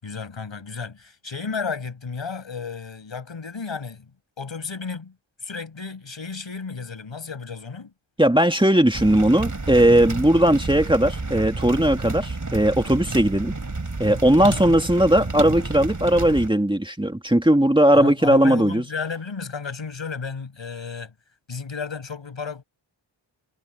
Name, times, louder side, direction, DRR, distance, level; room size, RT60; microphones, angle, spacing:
voice 1, 0.0-4.1 4.4-5.1 5.4-7.9 14.4-14.8 17.9-21.1 21.5-22.6, left 5 dB, 70° left, 7.7 m, -33 dB
voice 2, 8.2-13.5 14.0-18.8, right 1 dB, 10° right, 2.2 m, -18 dB
sound 1, 8.9-16.5, right 3 dB, 40° right, 4.1 m, -30 dB
wide cardioid pair, 60°, 47 cm